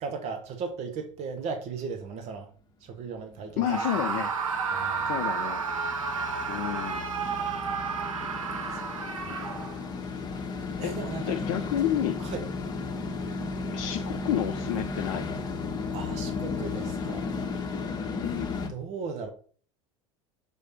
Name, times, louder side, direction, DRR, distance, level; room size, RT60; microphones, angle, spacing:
voice 1, 0.0-2.5 2.8-3.6 4.7-5.2 8.7-8.8 9.2-9.7 10.8-11.4 12.2-12.4 15.9-17.3 17.9-18.0 18.7-19.3, right 5 dB, 40° right, 1.2 m, -37 dB
sound 1, 3.5-18.7, left 4 dB, 25° left, 1.2 m, -35 dB
voice 2, 3.6-4.3 5.1-5.6 6.5-7.1 10.8-11.0 11.3-12.3 13.7-15.5 18.2-18.5, left 11 dB, 55° left, 0.6 m, -30 dB
Screaming, 3.6-9.9, right 5 dB, 80° right, 0.9 m, -31 dB
6.9 x 3.3 x 4.1 m
figure-of-eight pair, 80°, 17 cm